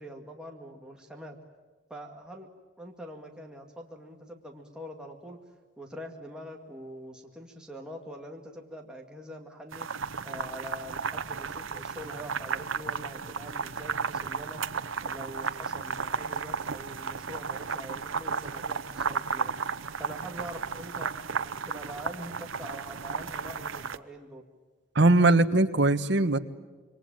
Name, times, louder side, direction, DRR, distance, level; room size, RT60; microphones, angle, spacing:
voice 1, 0.0-1.4 1.9-2.5 2.8-5.4 5.8-9.9 10.2-14.6 15.0-19.5 20.0-24.5, equal, 5° right, 0 dB, 2.1 m, -44 dB
sound 1, 9.7-24.0, right 5 dB, 80° right, 1.0 m, -34 dB
voice 2, 24.9-26.4, right 2 dB, 60° right, 9 dB, 1.3 m, -21 dB
27.0 x 23.5 x 9.0 m, 1.4 s
head